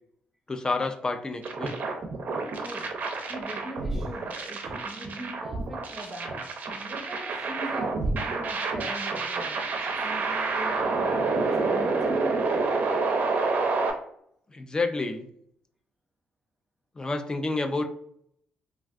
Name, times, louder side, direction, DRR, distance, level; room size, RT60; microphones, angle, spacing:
voice 1, 0.5-1.7 9.8-9.9 14.5-15.3 17.0-17.8, left 3 dB, 20° left, 0.3 m, -29 dB
sound 1, 1.4-13.9, right 3 dB, 50° right, 0.5 m, -28 dB
voice 2, 2.5-3.0 3.3-9.6 10.0-12.5, right 1 dB, 5° right, 0.8 m, -40 dB
3.3 x 2.4 x 2.4 m
cardioid pair, 110°, 4 cm